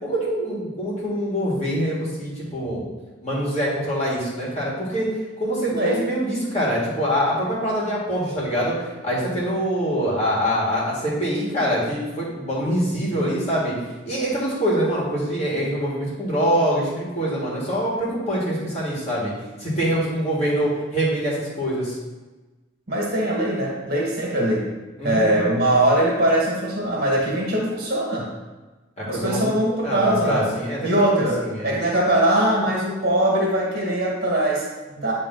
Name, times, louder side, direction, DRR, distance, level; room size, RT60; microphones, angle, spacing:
voice 1, 0.0-2.9 3.2-5.1 5.4-13.7 14.0-19.3 19.6-22.0 25.0-25.5 29.0-29.5 29.8-31.7, equal, 35° left, -7 dB, 2.3 m, -24 dB
voice 2, 5.7-6.0 22.9-24.7 25.0-28.3 29.0-30.5 30.8-35.1, right 1 dB, 50° right, -4 dB, 1.9 m, -21 dB
8.8 x 3.6 x 4.1 m, 1.2 s
head